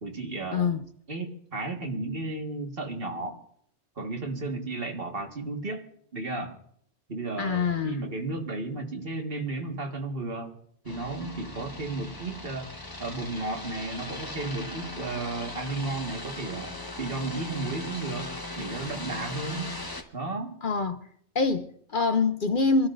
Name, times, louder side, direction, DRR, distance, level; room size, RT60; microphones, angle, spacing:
voice 1, 0.0-0.7 1.1-3.4 4.0-5.9 6.1-6.6 7.1-10.5 10.8-12.7 13.0-16.7 17.0-18.3 18.6-19.8 20.1-20.6, right 3 dB, 55° right, 1.9 m, -33 dB
voice 2, 0.5-0.8 7.4-8.1 20.6-21.0 21.3-22.9, left 4 dB, 50° left, 0.8 m, -25 dB
sound 1, 10.8-20.0, left 2 dB, 20° left, 1.2 m, -39 dB
27.0 x 12.5 x 2.6 m
omnidirectional pair, 1.2 m